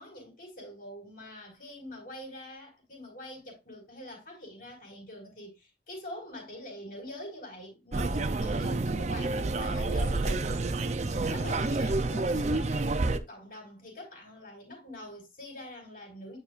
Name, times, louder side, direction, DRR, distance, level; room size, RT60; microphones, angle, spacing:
voice 1, 0.0-16.4, left 1 dB, 50° left, 4.9 m, -44 dB
sound 1, 7.9-13.2, right 2 dB, 40° right, 0.5 m, -29 dB
9.7 x 6.4 x 2.5 m
head